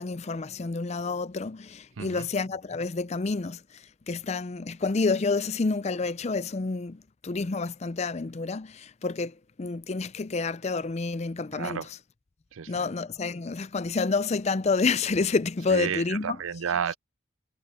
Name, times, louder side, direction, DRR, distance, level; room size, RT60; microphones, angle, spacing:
voice 1, 0.0-11.8 12.7-16.4, left 4 dB, 30° left, 0.5 m, -29 dB
voice 2, 2.0-2.3 11.5-11.9 12.5-12.9 15.7-17.0, right 7 dB, 80° right, 0.5 m, -32 dB
head